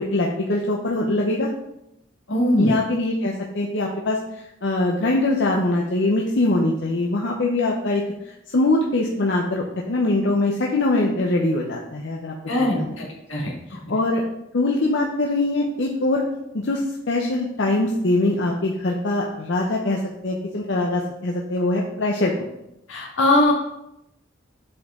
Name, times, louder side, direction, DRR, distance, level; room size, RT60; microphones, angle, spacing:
voice 1, 0.0-1.5 2.6-12.3 12.6-13.0 13.4-13.5 13.9-14.2 14.5-16.2 16.5-22.3, left 2 dB, 65° left, -1 dB, 0.7 m, -23 dB
voice 2, 2.3-2.7 12.5-13.8 22.9-23.5, left 1 dB, 85° left, -1 dB, 1.7 m, -21 dB
7.5 x 4.4 x 3.6 m, 0.86 s
head